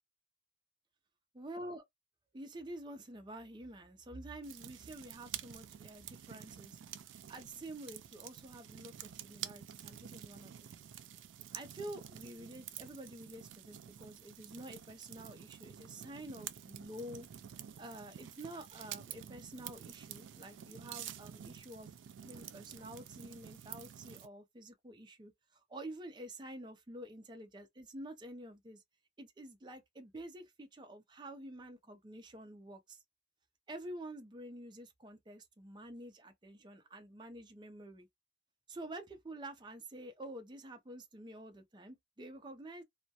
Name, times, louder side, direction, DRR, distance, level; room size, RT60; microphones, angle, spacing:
voice 1, 1.3-1.8 2.3-7.0 7.3-10.7 11.5-17.3 17.5-21.9 22.2-28.8 29.2-33.0 33.7-38.1 38.7-42.8, right 1 dB, 25° right, 0.4 m, -49 dB
sound 1, 4.4-24.3, right 10 dB, 90° right, 0.3 m, -49 dB
2.2 x 2.1 x 2.7 m
head